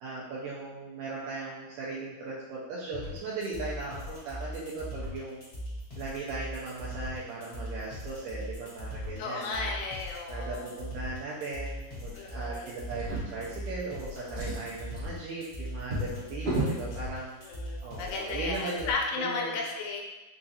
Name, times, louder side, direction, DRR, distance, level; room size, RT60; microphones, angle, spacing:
voice 1, 0.0-5.4 6.0-9.7 10.3-17.3 17.8-18.9 19.2-19.6, right 3 dB, 80° right, -6 dB, 2.2 m, -38 dB
sound 1, 2.9-18.9, equal, 65° left, 0.9 m, -39 dB
voice 2, 9.2-10.7 12.1-12.7 16.3-16.4 17.4-20.0, left 4 dB, 80° left, 0 dB, 2.1 m, -34 dB
Drawer open or close, 12.9-13.9 14.2-16.8 17.7-17.9 18.2-18.3, right 2 dB, 60° right, 1.5 m, -34 dB
5.5 x 2.4 x 2.7 m, 1.1 s
omnidirectional pair, 4.0 m